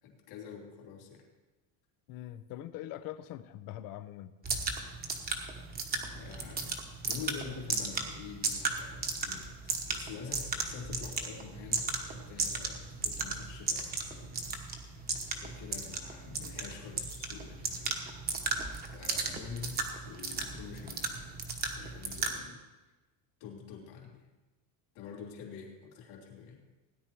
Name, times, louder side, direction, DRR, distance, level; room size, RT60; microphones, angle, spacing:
voice 1, 0.0-1.2 6.1-6.8 7.0-14.6 15.4-18.1 18.9-19.8 20.0-21.1 21.8-22.6 23.4-24.2 24.9-26.6, left 6 dB, 60° left, 0 dB, 3.3 m, -46 dB
voice 2, 2.1-4.3, left 13 dB, 45° left, 14 dB, 0.6 m, -43 dB
sound 1, 4.4-22.4, right 4 dB, 20° right, 1.1 m, -36 dB
17.0 x 10.0 x 4.7 m, 1.2 s
cardioid pair, 180°, 49 cm